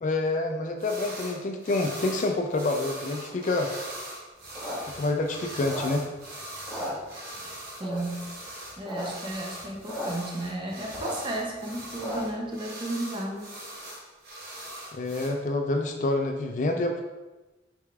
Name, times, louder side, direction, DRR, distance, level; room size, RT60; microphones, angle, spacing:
voice 1, 0.0-3.7 4.9-6.0 14.9-17.0, left 2 dB, 45° left, 4 dB, 0.3 m, -27 dB
sound 1, 0.8-1.4 1.6-15.3, right 1 dB, 60° right, 0.9 m, -41 dB
sound 2, 4.4-6.2 6.6-7.5 7.8-8.3 8.7-9.0 9.3-9.4 9.6-10.1 10.4-12.4, equal, ahead, 1.4 m, -36 dB
voice 2, 7.8-8.2 8.8-13.5, right 1 dB, 25° right, 0 dB, 0.5 m, -33 dB
4.8 x 3.5 x 2.3 m, 1.1 s
head